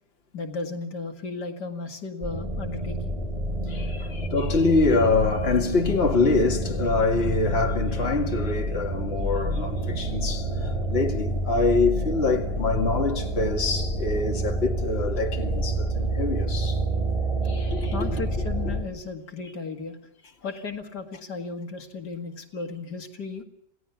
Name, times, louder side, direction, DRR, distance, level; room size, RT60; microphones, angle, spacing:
voice 1, 0.3-3.2 4.0-4.2 17.9-20.0 20.4-23.4, left 4 dB, 75° left, 2.5 m, -35 dB
sound 1, 2.2-18.8, right 1 dB, 20° right, 3.6 m, -28 dB
voice 2, 3.7-16.8 17.4-18.1, left 3 dB, 35° left, 2.3 m, -25 dB
28.0 x 17.0 x 7.0 m
omnidirectional pair, 1.8 m